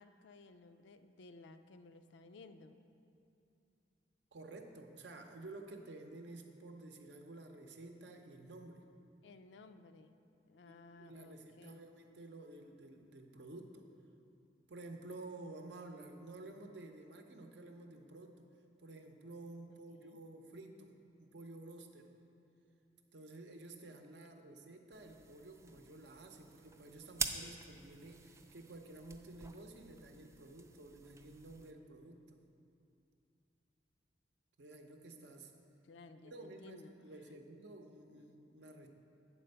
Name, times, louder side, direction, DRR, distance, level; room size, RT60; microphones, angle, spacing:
voice 1, 0.0-2.8 9.2-10.1 10.5-11.9 19.7-20.2 35.8-36.9, left 3 dB, 80° left, 9 dB, 0.4 m, -57 dB
voice 2, 4.3-8.8 10.6-13.9 14.7-18.4 18.8-20.9 21.2-22.1 23.1-32.4 34.6-35.5 36.2-38.9, right 2 dB, 70° right, 4 dB, 0.7 m, -52 dB
sound 1, 24.9-31.7, right 4 dB, 15° right, 0.3 m, -46 dB
9.0 x 4.3 x 6.6 m, 2.7 s
head